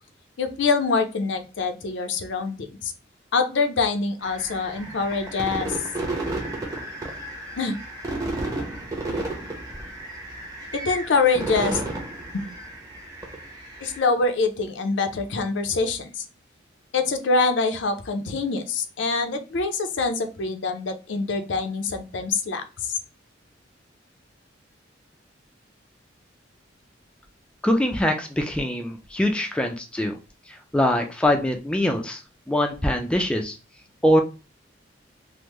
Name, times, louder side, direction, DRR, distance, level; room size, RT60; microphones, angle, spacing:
voice 1, 0.4-2.9 3.3-5.8 7.6-7.8 10.7-11.8 12.3-12.5 13.8-16.2 16.9-23.0, left 4 dB, 65° left, 7 dB, 0.5 m, -25 dB
sound 1, 4.2-14.0, right 2 dB, 20° right, 0.7 m, -33 dB
voice 2, 27.6-30.2 30.5-32.2 32.5-33.6 34.0-34.2, left 1 dB, 5° left, 3 dB, 0.3 m, -23 dB
3.4 x 2.0 x 3.0 m, 0.33 s
head